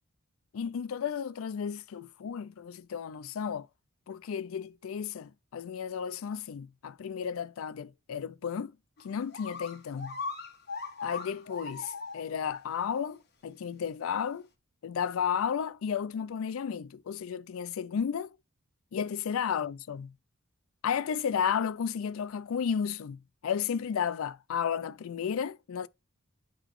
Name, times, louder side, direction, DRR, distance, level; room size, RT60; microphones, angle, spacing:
voice 1, 0.5-3.7 4.1-8.7 9.0-10.2 11.0-14.5 14.8-18.4 18.9-20.1 20.8-25.9, left 7 dB, 75° left, 0.4 m, -33 dB
sound 1, 9.0-9.1 9.3-12.6 13.0-13.1 13.8-13.9, left 4 dB, 50° left, 1.4 m, -39 dB
9.0 x 3.9 x 3.1 m
head